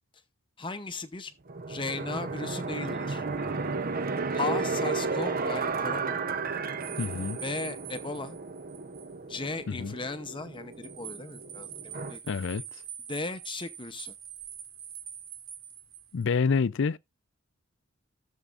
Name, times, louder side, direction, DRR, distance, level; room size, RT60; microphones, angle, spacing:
voice 1, 0.6-1.3 1.7-3.2 4.3-6.2 7.4-8.4 9.3-12.2 13.1-14.1, left 3 dB, 25° left, 0.8 m, -36 dB
sound 1, 1.5-12.2, right 4 dB, 45° right, 0.7 m, -33 dB
sound 2, 6.8-9.2 9.5-9.6 10.5-16.2, right 9 dB, 80° right, 2.6 m, -44 dB
voice 2, 7.0-7.4 9.7-9.9 12.3-12.6 16.1-17.0, left 5 dB, 60° left, 0.5 m, -27 dB
14.5 x 7.3 x 2.5 m
head